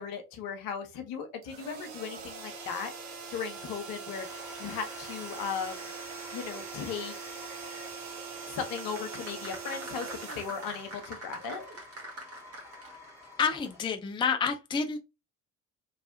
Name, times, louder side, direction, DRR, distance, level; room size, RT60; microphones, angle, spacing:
voice 1, 0.0-2.9 3.3-4.3 4.6-5.9 6.3-7.1 8.5-11.6, left 6 dB, 55° left, 1.1 m, -37 dB
sound 1, 1.4-11.4, right 5 dB, 65° right, 1.0 m, -42 dB
sound 2, 4.2-13.8, left 2 dB, 5° right, 2.0 m, -50 dB
sound 3, 8.7-13.2 13.5-13.6, right 1 dB, 35° right, 1.6 m, -44 dB
voice 2, 13.4-15.0, left 5 dB, 10° left, 0.5 m, -28 dB
3.3 x 3.2 x 2.7 m
figure-of-eight pair, 50°, 40 cm